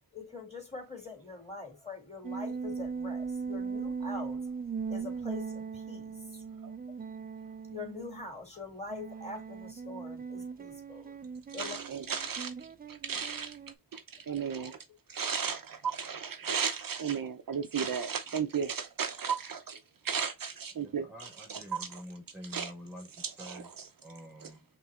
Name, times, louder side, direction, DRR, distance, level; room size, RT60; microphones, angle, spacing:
voice 1, 0.1-4.5 4.9-6.2 7.7-11.1 11.5-11.8 14.2-14.7 15.3-15.4, left 3 dB, 15° left, 2.6 m, -44 dB
sound 1, 2.2-8.2 8.9-13.8, right 5 dB, 25° right, 0.4 m, -39 dB
voice 2, 11.6-13.6 13.9-14.8 15.1-22.0 22.5-22.7 23.4-23.9 24.4-24.5, right 6 dB, 60° right, 0.6 m, -35 dB
voice 3, 20.7-23.7 24.0-24.6, equal, 5° right, 1.2 m, -47 dB
5.6 x 3.1 x 2.3 m
wide cardioid pair, 75°, 38 cm